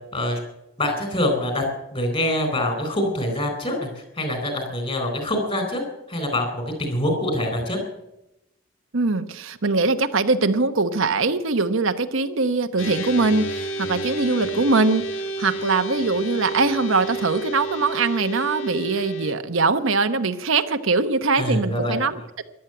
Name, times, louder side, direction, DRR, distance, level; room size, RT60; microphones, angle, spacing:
voice 1, 0.1-0.5 0.8-1.6 1.9-5.8 6.1-7.8 21.4-22.0, left 1 dB, 25° left, 6 dB, 4.2 m, -25 dB
voice 2, 8.9-15.0 15.4-22.2, right 3 dB, 70° right, 8 dB, 1.0 m, -22 dB
sound 1, 12.8-19.3, right 2 dB, 70° left, 1.7 m, -30 dB
14.5 x 11.5 x 7.8 m, 0.87 s
head